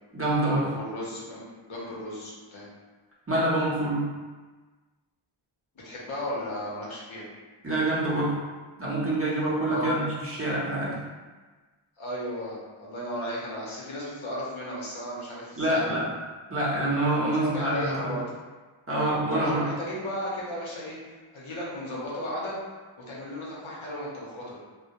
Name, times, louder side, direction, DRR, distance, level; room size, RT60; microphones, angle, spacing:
voice 1, 0.1-0.7 3.3-4.1 7.6-8.4 8.8-11.0 15.6-16.0 16.5-18.2 18.9-19.6, right 1 dB, 25° right, -7 dB, 0.7 m, -26 dB
voice 2, 0.7-2.7 5.8-7.3 9.7-10.0 12.0-16.0 17.3-18.4 19.3-22.6 23.1-24.6, equal, 70° left, -6 dB, 0.8 m, -35 dB
2.2 x 2.1 x 2.8 m, 1.3 s
wide cardioid pair, 55°, 50 cm